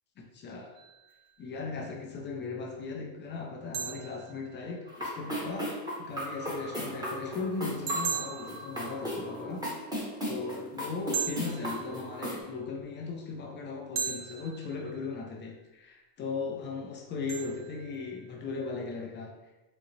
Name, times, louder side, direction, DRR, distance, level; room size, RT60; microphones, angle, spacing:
voice 1, 0.2-0.7 1.4-9.6 10.3-19.3, left 4 dB, 25° left, 0 dB, 0.4 m, -38 dB
sound 1, 0.7-1.5 3.7-5.1 7.9-9.6 11.1-12.5 13.9-15.3 17.3-18.5, right 7 dB, 45° right, 0.5 m, -39 dB
sound 2, 4.9-12.4, equal, 10° right, 1.0 m, -36 dB
3.8 x 2.0 x 3.0 m, 1.1 s
supercardioid pair, 110°, 48 cm